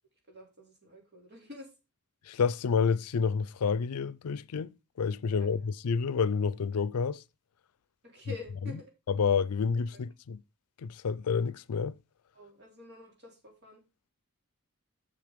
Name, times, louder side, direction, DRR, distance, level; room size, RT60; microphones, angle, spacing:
voice 1, 0.3-1.7 5.4-5.7 8.0-8.9 9.9-10.0 12.3-13.8, left 3 dB, 50° right, 3.6 m, -47 dB
voice 2, 2.3-7.2 9.2-10.4 10.8-12.0, left 5 dB, 90° left, 0.5 m, -29 dB
6.8 x 6.8 x 5.0 m
head